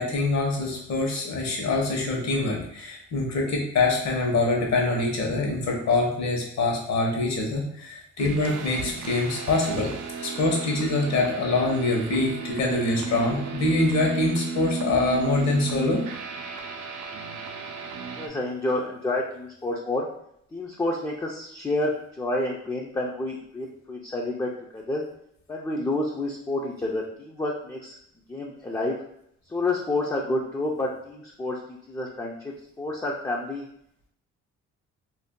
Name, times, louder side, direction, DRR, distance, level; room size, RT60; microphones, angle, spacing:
voice 1, 0.0-9.9 10.2-16.1, left 2 dB, 65° left, 0 dB, 1.0 m, -25 dB
sound 1, 8.2-18.3, right 6 dB, 75° right, 0.5 m, -34 dB
voice 2, 18.2-20.1 20.5-25.0 25.5-27.9 28.3-29.0 29.5-33.6, left 2 dB, 10° left, -2 dB, 0.4 m, -29 dB
2.6 x 2.2 x 3.6 m, 0.72 s
cardioid pair, 90°, 30 cm